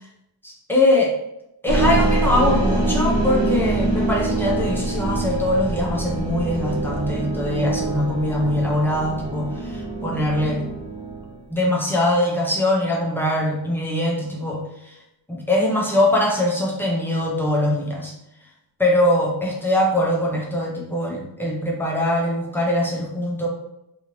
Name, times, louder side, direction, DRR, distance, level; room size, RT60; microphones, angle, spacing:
voice 1, 0.4-1.2 1.6-10.6 11.5-15.0 15.3-18.1 18.8-23.5, left 1 dB, 5° left, -2 dB, 0.4 m, -22 dB
sound 1, 1.7-11.4, right 2 dB, 35° right, 0.7 m, -24 dB
2.9 x 2.4 x 2.9 m, 0.85 s
cardioid pair, 160°, 45 cm